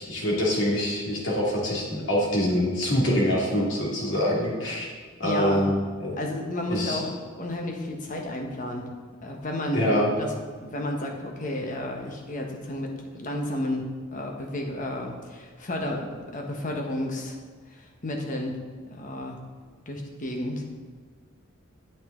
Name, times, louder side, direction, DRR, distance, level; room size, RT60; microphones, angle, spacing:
voice 1, 0.0-4.9 5.2-6.2 6.7-7.0 9.7-10.1, equal, 65° left, -4 dB, 2.5 m, -25 dB
voice 2, 5.2-5.7 6.2-8.9 9.2-9.9 10.2-17.3 17.7-18.6 18.9-19.4 19.9-20.6, left 1 dB, 40° left, 1 dB, 1.3 m, -32 dB
9.3 x 8.3 x 3.9 m, 1.5 s
head